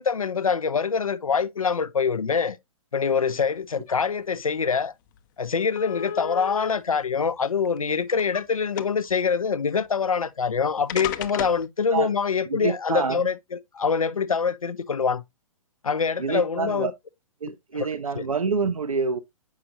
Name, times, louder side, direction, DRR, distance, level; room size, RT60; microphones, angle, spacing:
voice 1, 0.0-2.6 2.9-4.9 5.4-15.2 15.8-16.9 17.7-17.9 18.2-18.3, left 6 dB, 80° left, 0.6 m, -25 dB
sound 1, 4.7-4.8 5.1-5.2 5.8-6.7 7.6-8.4 8.7-9.1 10.3-10.4 10.9-11.7, left 10 dB, 35° left, 0.6 m, -33 dB
voice 2, 12.5-13.3 16.2-16.9 17.4-19.2, right 4 dB, 80° right, 0.6 m, -27 dB
7.6 x 5.7 x 2.5 m
figure-of-eight pair, 120°, 18 cm